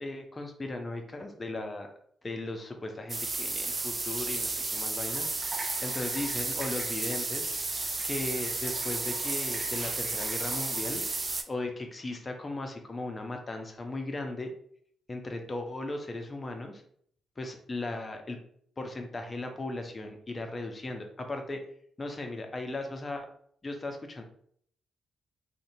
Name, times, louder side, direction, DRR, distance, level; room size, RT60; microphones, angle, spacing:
voice 1, 0.0-1.9 2.2-5.3 5.8-7.5 8.0-11.0 11.5-14.5 15.1-16.8 17.4-18.4 18.8-21.6 22.0-23.3 23.6-24.2, left 2 dB, 35° left, 4 dB, 0.5 m, -37 dB
sound 1, 3.1-11.4, right 3 dB, 35° right, 0.4 m, -32 dB
2.6 x 2.1 x 2.6 m, 0.63 s
hypercardioid pair, 45°, 0 cm